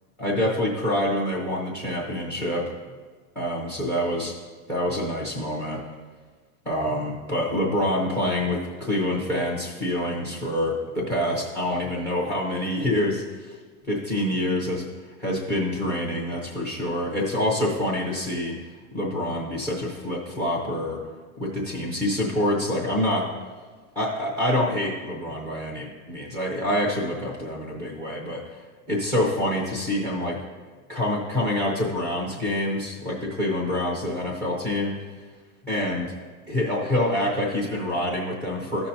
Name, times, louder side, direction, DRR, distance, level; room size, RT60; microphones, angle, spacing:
voice 1, 0.2-2.7 3.4-4.3 4.7-5.8 6.6-13.6 13.9-14.8 15.2-18.6 18.9-21.0 21.4-23.3 24.0-30.4 30.9-34.9 35.6-36.1 36.5-38.9, left 1 dB, 5° left, -1 dB, 0.4 m, -26 dB
14.0 x 5.8 x 2.6 m, 1.4 s
supercardioid pair, 155°, 47 cm